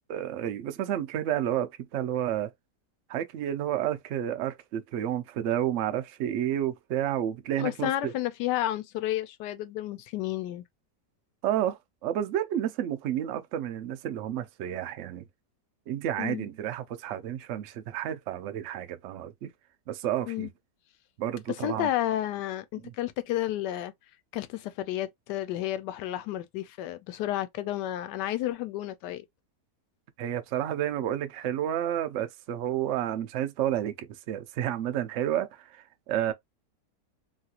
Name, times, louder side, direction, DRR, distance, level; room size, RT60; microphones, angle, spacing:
voice 1, 0.1-2.5 3.1-8.1 11.4-15.3 15.9-19.5 19.9-20.5 21.2-21.9 22.8-22.9 30.2-36.3, right 11 dB, 75° right, 0.6 m, -30 dB
voice 2, 7.6-10.6 16.2-16.5 20.3-20.5 21.6-23.9 24.3-29.2, left 13 dB, 80° left, 1.2 m, -31 dB
3.1 x 2.4 x 2.8 m
omnidirectional pair, 1.8 m